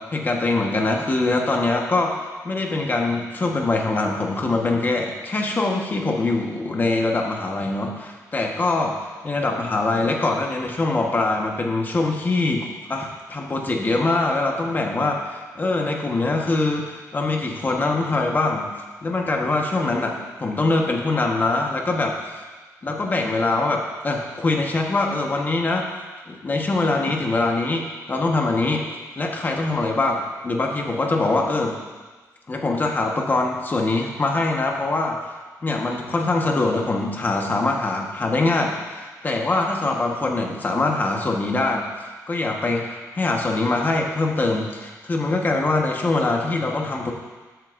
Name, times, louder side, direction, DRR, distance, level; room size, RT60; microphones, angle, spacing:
voice 1, 0.0-2.2 2.4-18.7 19.0-22.4 22.8-25.8 26.3-28.8 29.2-31.8 32.5-35.3 35.6-47.1, left 2 dB, 30° left, 1 dB, 1.2 m, -23 dB
13.0 x 7.9 x 2.6 m, 1.3 s
cardioid pair, 115°, 7 cm